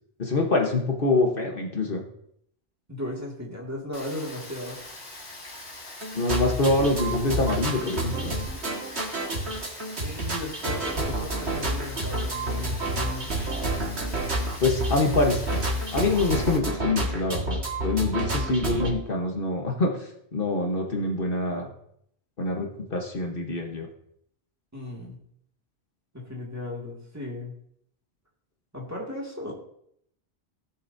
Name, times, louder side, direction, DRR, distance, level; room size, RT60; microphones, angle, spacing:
voice 1, 0.2-2.0 6.1-8.3 14.6-15.4 15.9-21.7 22.4-23.9, left 2 dB, 55° left, 2 dB, 1.4 m, -25 dB
voice 2, 2.9-4.8 10.0-13.3 24.7-25.2 26.1-27.5 28.7-29.5, left 1 dB, 15° right, -3 dB, 2.2 m, -36 dB
Rain, 3.9-16.6, left 2 dB, 75° left, 2.6 m, -43 dB
sound 1, 6.0-18.9, right 1 dB, 85° right, 2.1 m, -29 dB
17.0 x 7.1 x 2.7 m, 0.71 s
omnidirectional pair, 1.1 m